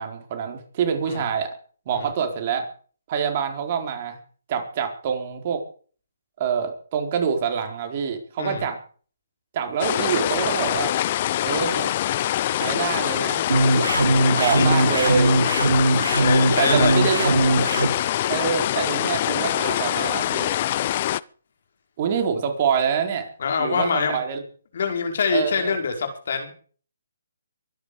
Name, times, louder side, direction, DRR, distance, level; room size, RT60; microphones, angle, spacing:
voice 1, 0.0-1.5 1.9-2.7 3.1-4.2 4.5-5.6 6.4-8.8 9.5-10.9 11.4-11.9 12.5-13.5 14.4-15.4 16.6-17.6 18.3-20.5 22.0-23.3 23.6-24.4 25.3-25.8, right 7 dB, 40° right, 5 dB, 4.4 m, -26 dB
sound 1, 9.8-21.2, left 13 dB, 40° left, 0.7 m, -24 dB
sound 2, 13.5-17.9, right 2 dB, 90° right, 3.5 m, -20 dB
voice 2, 16.1-17.0 23.4-24.2 24.7-26.5, left 5 dB, 60° left, 5 dB, 5.4 m, -25 dB
23.5 x 10.5 x 5.1 m, 0.43 s
hypercardioid pair, 145°, 0 cm